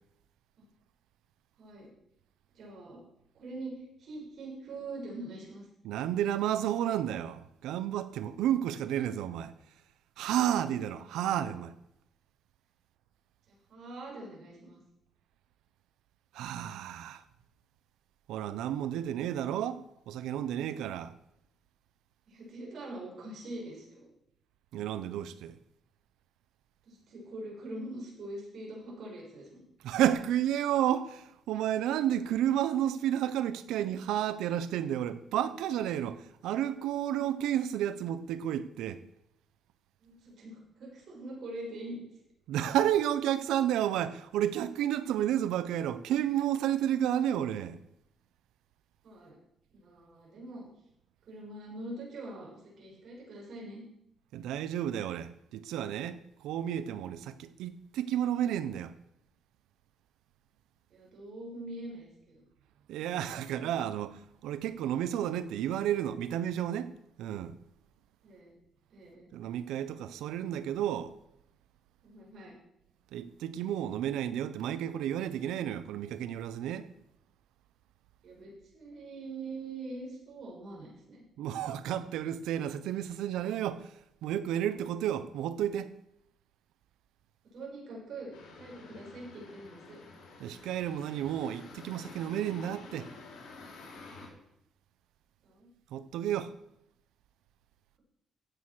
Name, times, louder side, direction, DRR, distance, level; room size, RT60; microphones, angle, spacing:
voice 1, 1.6-1.9 2.6-3.0 3.3-5.7 13.5-14.8 22.3-24.1 26.9-29.6 40.0-42.0 49.0-49.4 49.7-50.7 51.3-52.5 52.8-53.8 60.9-62.4 68.2-68.6 68.9-69.3 72.0-72.5 78.2-81.2 87.5-90.0 95.4-95.7, right 2 dB, 60° right, 7.0 m, -43 dB
voice 2, 5.8-9.5 10.2-11.7 16.3-17.2 18.3-19.8 20.1-21.1 24.7-25.6 29.8-39.0 42.5-47.8 54.3-58.9 62.9-66.9 67.2-67.6 69.3-71.1 73.1-76.9 81.4-83.9 84.2-85.9 90.4-93.1 95.9-96.5, right 11 dB, 90° right, 0.9 m, -31 dB
sound 1, 88.3-94.3, left 3 dB, 85° left, 5.1 m, -50 dB
15.0 x 8.6 x 6.3 m
cardioid pair, 90°, 0 cm